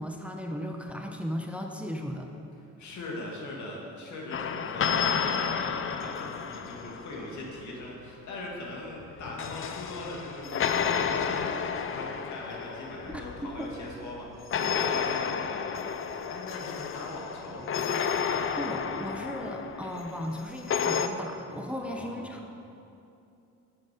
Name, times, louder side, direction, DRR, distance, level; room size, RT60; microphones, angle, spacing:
voice 1, 0.0-2.3 13.1-13.2 13.6-13.7 18.6-22.6, equal, 5° right, 2 dB, 0.8 m, -36 dB
voice 2, 2.8-17.9 21.8-22.2, left 2 dB, 70° left, -2 dB, 2.3 m, -40 dB
sound 1, 4.3-7.5 9.0-13.9 14.5-21.1, left 7 dB, 45° left, 0.6 m, -31 dB
10.0 x 7.8 x 5.1 m, 2.7 s
cardioid pair, 90°, 30 cm